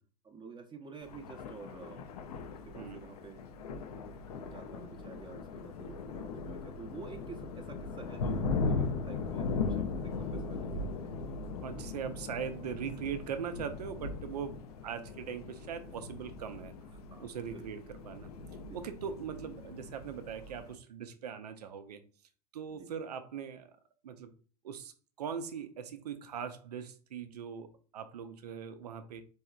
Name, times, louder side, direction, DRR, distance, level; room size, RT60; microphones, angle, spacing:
voice 1, 0.2-2.1 2.6-3.4 4.5-11.2 17.1-17.7 18.6-18.8 22.8-22.9, right 4 dB, 25° right, 4 dB, 0.7 m, -49 dB
Thunder, 1.0-20.8, left 4 dB, 70° left, 0.5 m, -39 dB
voice 2, 11.6-14.6 14.8-16.7 17.2-18.3 18.7-22.0 22.5-23.8 24.0-24.3 24.6-29.2, right 7 dB, 80° right, 9 dB, 0.5 m, -40 dB
4.4 x 2.7 x 2.3 m, 0.39 s
hypercardioid pair, 85°, 20 cm